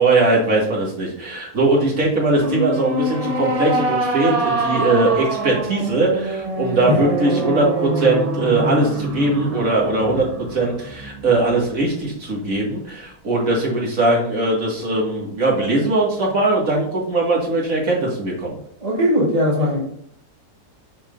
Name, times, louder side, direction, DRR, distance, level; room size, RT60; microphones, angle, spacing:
voice 1, 0.0-18.5, right 2 dB, 55° right, -3 dB, 2.3 m, -20 dB
sound 1, 2.4-11.8, right 2 dB, 75° right, 0.3 m, -25 dB
voice 2, 18.8-19.8, left 1 dB, 25° right, -3 dB, 1.4 m, -19 dB
6.6 x 6.0 x 2.6 m, 0.69 s
omnidirectional pair, 1.8 m